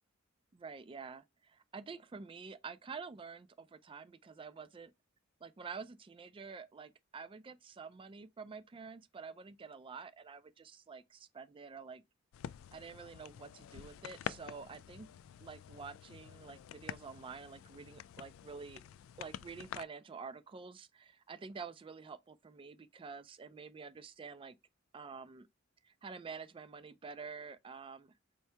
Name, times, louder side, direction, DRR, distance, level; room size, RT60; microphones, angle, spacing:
voice 1, 0.5-4.9 5.4-12.0 12.7-15.1 15.4-18.8 19.2-24.6 24.9-25.5 25.8-28.1, right 5 dB, 25° right, 0.3 m, -48 dB
sound 1, 12.3-19.8, left 9 dB, 80° left, 0.3 m, -48 dB
4.3 x 2.7 x 3.3 m
head